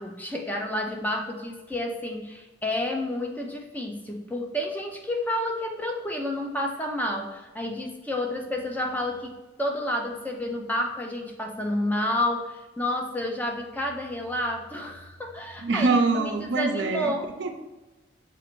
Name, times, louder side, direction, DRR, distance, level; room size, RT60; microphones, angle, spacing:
voice 1, 0.0-17.3, left 1 dB, 10° left, 2 dB, 0.4 m, -30 dB
voice 2, 15.6-17.1 17.4-17.5, right 3 dB, 70° right, 6 dB, 0.5 m, -24 dB
7.1 x 2.5 x 3.0 m, 1.1 s
head